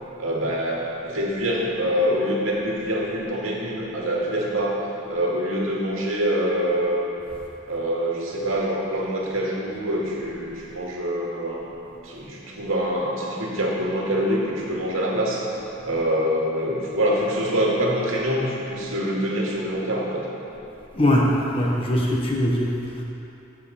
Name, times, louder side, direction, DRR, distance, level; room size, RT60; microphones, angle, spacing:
voice 1, 0.2-4.8 5.1-7.0 7.7-11.7 12.0-15.5 15.8-20.2, equal, 80° right, -4 dB, 2.2 m, -25 dB
voice 2, 20.9-23.0, left 1 dB, 25° left, -3 dB, 1.0 m, -22 dB
15.0 x 7.5 x 4.2 m, 2.8 s
head